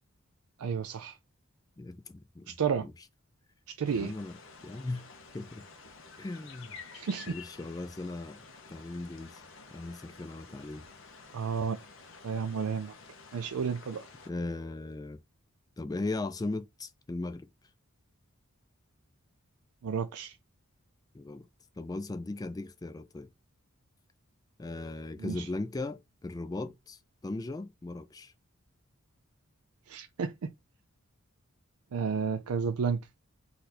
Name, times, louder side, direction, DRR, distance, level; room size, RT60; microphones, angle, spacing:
voice 1, 0.6-1.2 2.5-2.9 3.7-4.1 6.9-7.3 11.3-11.8 12.2-12.9 13.3-14.0 19.8-20.4 25.2-25.5 29.9-30.5 31.9-33.0, right 6 dB, 90° right, 0.4 m, -31 dB
voice 2, 1.8-2.9 3.9-4.4 4.6-5.1 5.3-5.7 6.2-6.8 7.3-9.4 9.7-10.9 14.2-15.2 15.8-17.5 21.1-21.5 21.8-23.3 24.6-28.3, left 2 dB, 15° left, 0.3 m, -38 dB
sound 1, 3.8-14.3, left 4 dB, 60° left, 1.0 m, -51 dB
4.2 x 2.6 x 4.1 m
head